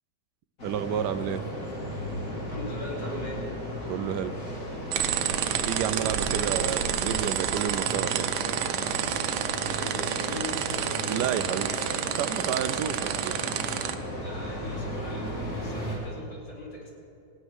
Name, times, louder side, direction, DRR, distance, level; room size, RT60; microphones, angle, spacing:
sound 1, 0.6-16.0, equal, 45° left, 2.9 m, -36 dB
voice 1, 0.6-1.4 3.9-4.4 5.7-8.3 11.1-11.7 12.2-13.3, right 9 dB, 70° right, 11 dB, 1.0 m, -30 dB
voice 2, 2.5-3.5 6.3-6.7 9.6-12.1 14.2-16.9, left 1 dB, 65° left, -5 dB, 3.8 m, -40 dB
sound 2, 4.9-13.9, right 10 dB, 90° right, 1.5 m, -29 dB
16.5 x 9.8 x 6.4 m, 2.7 s
omnidirectional pair, 2.1 m